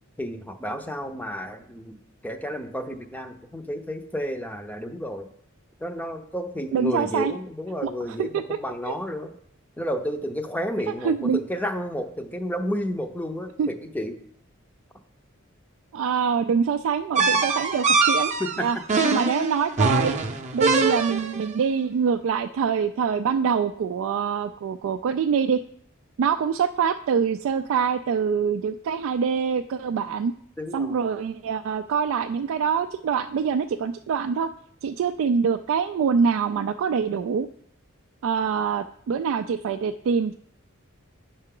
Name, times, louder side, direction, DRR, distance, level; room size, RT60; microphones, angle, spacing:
voice 1, 0.2-5.3 5.8-9.3 9.8-14.1 18.4-18.7 30.6-31.0, equal, 10° left, 7 dB, 0.6 m, -31 dB
voice 2, 6.7-7.3 7.8-7.9 8.2-8.4 11.0-11.4 13.6-13.7 15.9-18.3 18.6-18.8 19.0-20.2 20.5-25.6 26.2-30.3 30.7-34.5 34.8-37.5 38.2-40.3, right 6 dB, 65° right, 7 dB, 0.3 m, -24 dB
sound 1, 17.2-21.4, right 3 dB, 35° right, 0.6 m, -23 dB
8.9 x 5.6 x 3.7 m, 0.66 s
head